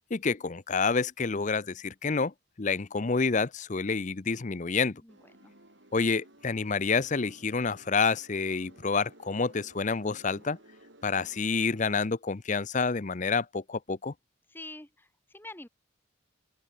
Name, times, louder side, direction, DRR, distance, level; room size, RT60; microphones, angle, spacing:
voice 1, 0.1-5.0 5.9-10.6 11.0-14.1, left 4 dB, 35° left, 0.6 m, -28 dB
voice 2, 5.0-5.5 14.5-15.7, left 2 dB, 10° left, 1.9 m, -46 dB
sound 1, 5.1-12.0, right 1 dB, 60° right, 5.5 m, -56 dB
open air
head